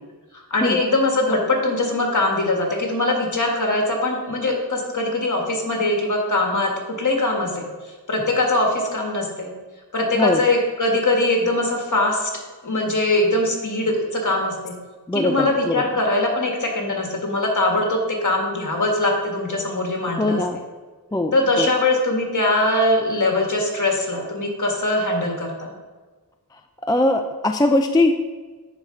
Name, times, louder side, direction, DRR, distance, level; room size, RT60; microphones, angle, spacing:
voice 1, 0.3-7.7 8.1-9.5 9.9-12.3 12.6-14.7 15.1-20.4 21.3-25.7, left 2 dB, 50° left, 1 dB, 1.5 m, -22 dB
voice 2, 10.1-10.5 15.1-15.9 20.2-20.6 21.1-21.7 26.8-28.1, left 1 dB, 10° left, 6 dB, 0.4 m, -21 dB
9.4 x 4.3 x 3.8 m, 1.3 s
wide cardioid pair, 70°, 39 cm